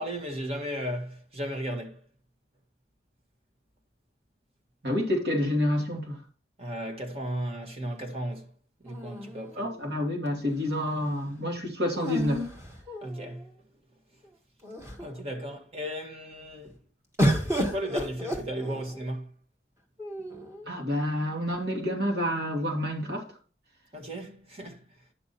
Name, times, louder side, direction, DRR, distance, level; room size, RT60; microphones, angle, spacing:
voice 1, 0.0-2.0 6.6-8.5 8.8-9.7 13.0-13.5 15.0-16.8 17.4-19.3 23.9-24.9, equal, 35° right, 1.6 m, -35 dB
voice 2, 4.8-6.2 9.6-12.5 20.7-23.3, left 1 dB, 65° right, 2.6 m, -28 dB
sound 1, 8.9-10.0 11.9-13.5 14.2-14.3 14.6-15.2 17.2-19.1 20.0-20.7, equal, 15° right, 1.6 m, -31 dB
10.0 x 6.1 x 4.3 m
head